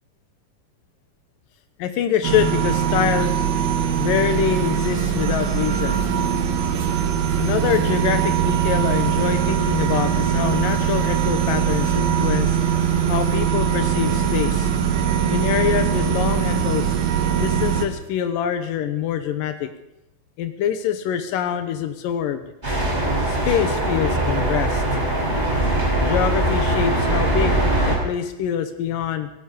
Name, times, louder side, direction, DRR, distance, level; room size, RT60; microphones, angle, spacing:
voice 1, 1.8-3.4 4.0-6.0 7.4-12.6 13.1-14.7 15.3-17.0 17.4-19.7 20.4-22.4 23.3-24.8 26.1-29.3, left 9 dB, 90° left, 9 dB, 2.7 m, -25 dB
sound 1, 2.2-17.9, right 8 dB, 90° right, 3.3 m, -21 dB
sound 2, 22.6-28.0, right 1 dB, 15° right, 4.5 m, -21 dB
17.0 x 16.5 x 5.1 m, 0.88 s
omnidirectional pair, 3.9 m